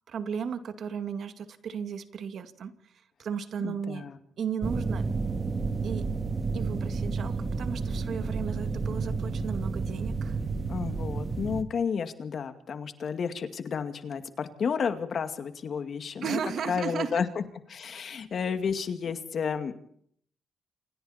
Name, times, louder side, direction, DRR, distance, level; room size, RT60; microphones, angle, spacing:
voice 1, 0.1-2.7 3.2-4.1 4.4-5.0 5.8-6.1 6.5-10.4 16.2-17.2, right 7 dB, 65° right, 9 dB, 2.1 m, -35 dB
voice 2, 3.6-4.2 10.7-17.4 17.7-19.7, left 6 dB, 55° left, 8 dB, 2.3 m, -32 dB
Piano String Glissando Low A, 4.6-11.6, right 4 dB, 35° right, 2.4 m, -31 dB
29.5 x 27.0 x 4.4 m, 0.65 s
cardioid pair, 95°, 0 cm